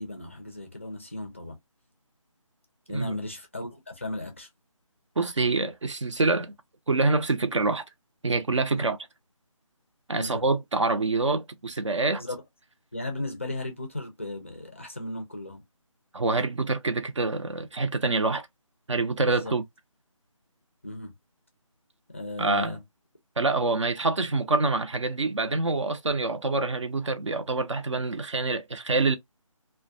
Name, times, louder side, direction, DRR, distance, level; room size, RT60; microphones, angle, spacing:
voice 1, 0.0-1.6 2.9-4.5 8.7-8.9 10.2-10.4 12.2-12.4 12.9-15.6 19.2-19.5 20.8-21.1 22.1-22.8, left 2 dB, 25° left, 0.4 m, -36 dB
voice 2, 5.2-6.5 6.9-7.8 8.2-9.0 10.1-12.2 16.1-18.5 18.9-19.6 22.4-22.8 23.4-29.2, right 3 dB, 60° right, 0.6 m, -26 dB
2.2 x 2.1 x 2.6 m
figure-of-eight pair, 160°, 17 cm